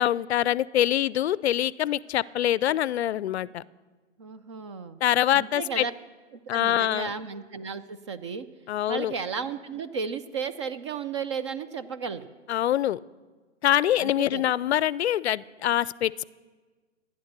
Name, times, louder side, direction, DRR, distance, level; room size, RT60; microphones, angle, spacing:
voice 1, 0.0-3.6 5.0-5.9 6.5-7.1 8.7-9.1 12.5-13.0 13.6-16.2, left 12 dB, 60° left, 21 dB, 0.5 m, -24 dB
voice 2, 4.2-5.0 5.3-5.9 6.5-8.5 8.9-12.3 14.0-14.4, right 5 dB, 25° right, 12 dB, 0.4 m, -34 dB
14.5 x 9.7 x 6.7 m, 1.3 s
hypercardioid pair, 135°, 36 cm